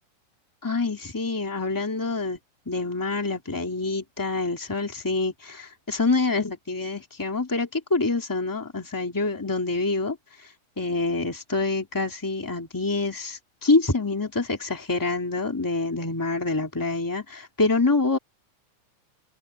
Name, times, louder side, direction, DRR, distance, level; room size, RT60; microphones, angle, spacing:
voice 1, 0.6-2.4 2.7-10.2 10.8-18.2, left 3 dB, 5° left, 2.3 m, -26 dB
open air
omnidirectional pair, 3.5 m